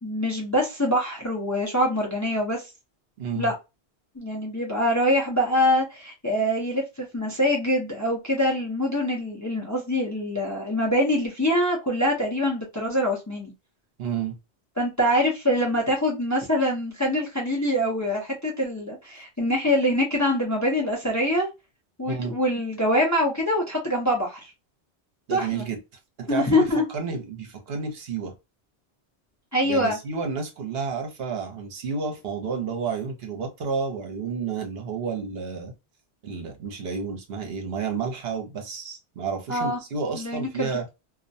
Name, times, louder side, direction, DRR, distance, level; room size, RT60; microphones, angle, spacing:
voice 1, 0.0-2.6 3.4-3.5 4.2-13.5 14.8-21.5 22.0-24.5 25.3-25.6 26.3-26.8 29.5-30.0 39.5-39.8 40.1-40.7, equal, 20° left, 0.5 m, -24 dB
voice 2, 3.2-3.5 14.0-14.3 22.0-22.4 25.3-25.8 26.2-26.6 26.9-28.3 29.7-35.7 36.2-40.8, right 5 dB, 65° right, 0.9 m, -31 dB
2.4 x 2.1 x 2.5 m
omnidirectional pair, 1.1 m